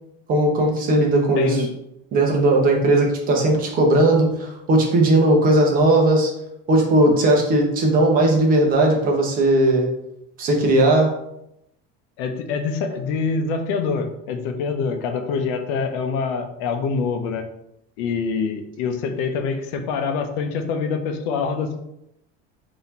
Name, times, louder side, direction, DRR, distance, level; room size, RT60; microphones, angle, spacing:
voice 1, 0.3-1.6 2.1-6.3 6.7-9.9 10.4-11.1, right 1 dB, 30° right, 0 dB, 0.8 m, -17 dB
voice 2, 1.4-1.7 12.2-17.5 18.0-21.8, left 5 dB, 70° left, 6 dB, 0.7 m, -25 dB
4.1 x 2.8 x 4.0 m, 0.81 s
cardioid pair, 175°, 29 cm